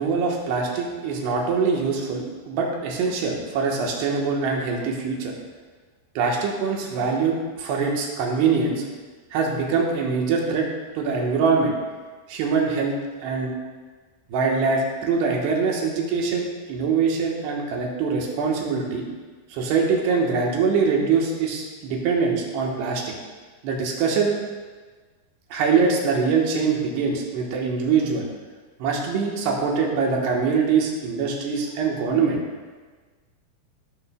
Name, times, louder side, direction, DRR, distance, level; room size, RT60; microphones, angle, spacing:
voice 1, 0.0-5.3 6.2-8.8 9.3-10.7 11.0-11.7 12.3-12.9 13.2-13.5 14.3-19.0 19.5-23.1 23.6-24.4 25.5-28.3 28.8-32.4, right 5 dB, 80° right, -1 dB, 3.0 m, -23 dB
14.0 x 6.9 x 2.2 m, 1.4 s
omnidirectional pair, 4.9 m